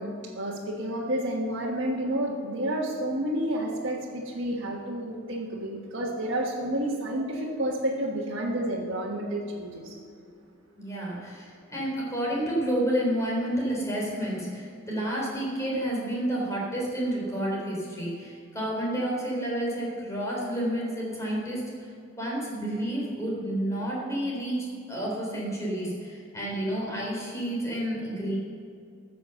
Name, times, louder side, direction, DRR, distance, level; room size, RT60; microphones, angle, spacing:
voice 1, 0.0-10.0, right 1 dB, 60° right, -4 dB, 1.5 m, -30 dB
voice 2, 10.8-21.9 22.1-28.4, right 1 dB, 15° left, -4 dB, 3.8 m, -30 dB
14.0 x 6.9 x 6.9 m, 2.4 s
head